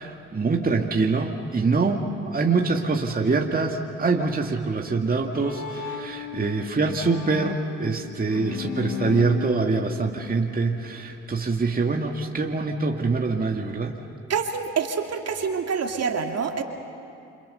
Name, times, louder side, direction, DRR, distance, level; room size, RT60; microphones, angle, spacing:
voice 1, 0.0-13.9, right 4 dB, 25° right, 2 dB, 2.0 m, -24 dB
Bowed string instrument, 5.0-11.1, left 10 dB, 65° left, 2.7 m, -36 dB
voice 2, 14.3-16.6, right 6 dB, 50° right, 4 dB, 2.6 m, -26 dB
28.5 x 27.0 x 6.8 m, 2.6 s
hypercardioid pair, 50°, 32 cm